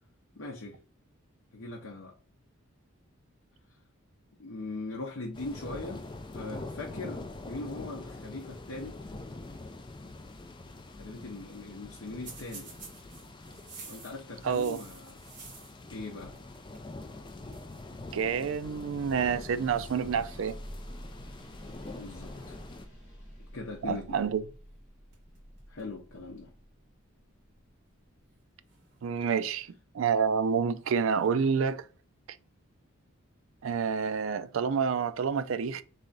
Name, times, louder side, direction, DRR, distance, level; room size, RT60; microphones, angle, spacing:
voice 1, 0.4-0.8 1.5-2.2 4.4-6.1 6.3-9.0 11.0-12.7 13.8-15.2 15.9-16.4 22.0-22.6 23.5-24.2 25.7-26.5, left 2 dB, 65° left, 0.7 m, -40 dB
sound 1, 5.3-22.9, left 2 dB, 20° left, 0.4 m, -44 dB
sound 2, 12.2-15.9 16.2-16.9 17.2-17.3 17.5-17.8 18.7-19.0 19.7-20.1 20.6-21.7 24.7-24.8 25.1-25.9 26.4-26.5 27.4-27.5 28.6-29.5 30.7-31.3, right 4 dB, 50° right, 1.6 m, -51 dB
voice 2, 14.4-14.8 18.1-20.6 23.9-24.4 29.0-29.7 29.9-31.8 33.6-35.8, right 6 dB, 70° right, 0.4 m, -28 dB
sound 3, 19.5-28.2, equal, 10° right, 1.5 m, -49 dB
3.7 x 3.3 x 3.9 m
head